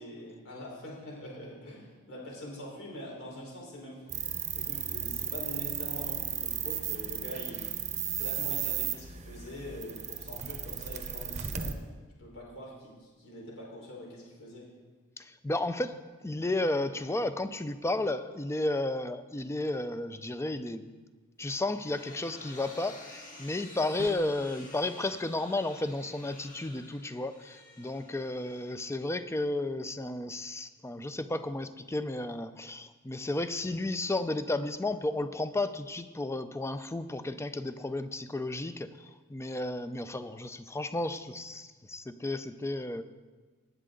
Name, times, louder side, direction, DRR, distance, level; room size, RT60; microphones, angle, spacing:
voice 1, 0.0-4.0 4.5-7.6 8.1-11.7 12.2-14.7, left 1 dB, 65° left, -3 dB, 4.3 m, -44 dB
sound 1, 4.1-11.7, right 9 dB, 30° right, 0.8 m, -35 dB
voice 2, 15.2-20.9 21.4-43.0, left 2 dB, 10° left, 11 dB, 0.5 m, -33 dB
sound 2, 21.4-29.3, left 2 dB, 40° left, 2.0 m, -51 dB
sound 3, 24.0-24.5, right 3 dB, 85° right, 0.6 m, -44 dB
19.0 x 9.3 x 3.8 m, 1.3 s
head